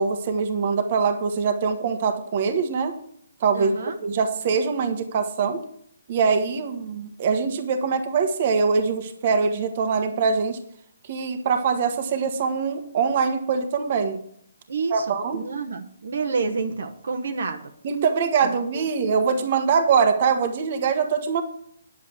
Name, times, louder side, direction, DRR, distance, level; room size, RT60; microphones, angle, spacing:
voice 1, 0.0-2.9 3.4-3.7 4.0-5.6 6.1-10.6 11.1-14.2 14.9-15.4 17.8-21.4, right 5 dB, 40° right, 6 dB, 1.4 m, -23 dB
voice 2, 3.5-4.0 14.7-17.7 18.4-18.9, right 4 dB, 70° right, 5 dB, 1.3 m, -29 dB
10.0 x 7.3 x 6.0 m, 0.66 s
hypercardioid pair, 160°, 0 cm